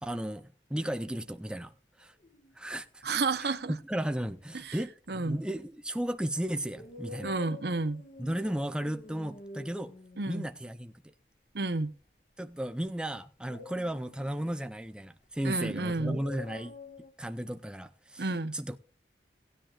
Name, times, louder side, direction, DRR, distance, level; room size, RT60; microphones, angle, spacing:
voice 1, 0.0-1.7 2.0-2.1 2.5-3.0 3.4-7.3 8.2-9.9 10.3-10.9 12.4-16.7 17.2-18.8, right 1 dB, 5° right, 0.5 m, -35 dB
sound 1, 0.7-1.1 2.0-2.6 5.6-5.7 6.7-10.7 13.5-14.7 15.9-17.1, left 2 dB, 40° left, 1.4 m, -47 dB
voice 2, 3.0-3.7 4.5-4.8 5.1-5.4 7.2-8.0 10.2-10.4 11.5-11.9 15.4-16.2 18.2-18.6, right 3 dB, 60° right, 0.9 m, -31 dB
18.0 x 10.0 x 2.4 m
head